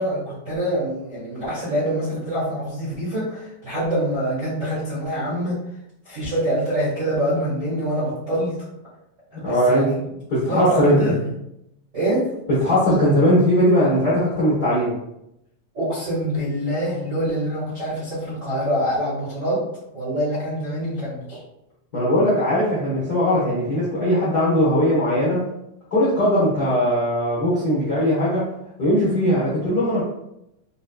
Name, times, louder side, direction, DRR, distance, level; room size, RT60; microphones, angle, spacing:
voice 1, 0.0-5.6 6.0-8.6 9.3-10.0 10.3-11.3 11.9-12.3 15.7-19.6 19.9-21.4, right 1 dB, 35° right, -11 dB, 1.2 m, -25 dB
voice 2, 9.4-11.0 12.5-14.9 21.9-25.5 25.9-28.5 28.8-30.0, equal, 50° left, -9 dB, 1.2 m, -19 dB
5.2 x 3.1 x 2.3 m, 0.83 s
omnidirectional pair, 3.6 m